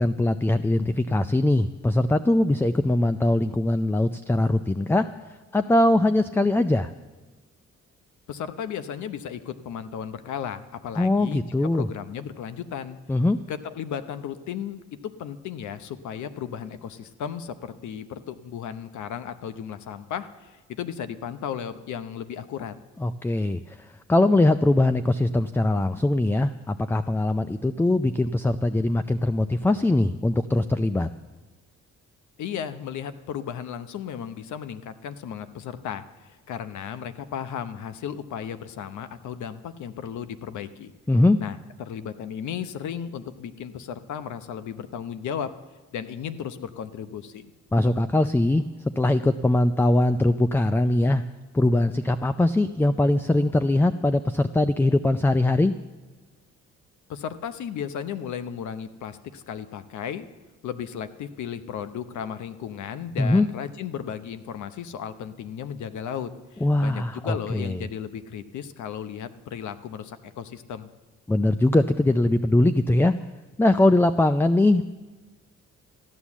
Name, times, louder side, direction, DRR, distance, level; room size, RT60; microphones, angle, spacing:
voice 1, 0.0-5.1 5.5-6.9 11.0-11.9 13.1-13.4 23.0-31.1 41.1-41.4 47.7-48.6 49.0-51.2 51.5-55.7 63.2-63.5 66.6-67.8 71.3-73.1 73.6-74.9, left 1 dB, 10° left, 11 dB, 0.4 m, -21 dB
voice 2, 8.3-13.0 13.5-22.7 32.4-40.9 41.4-45.5 45.9-47.5 57.1-60.3 60.6-70.9, left 8 dB, 75° left, 12 dB, 0.9 m, -35 dB
14.0 x 9.9 x 7.2 m, 1.3 s
cardioid pair, 90°, 30 cm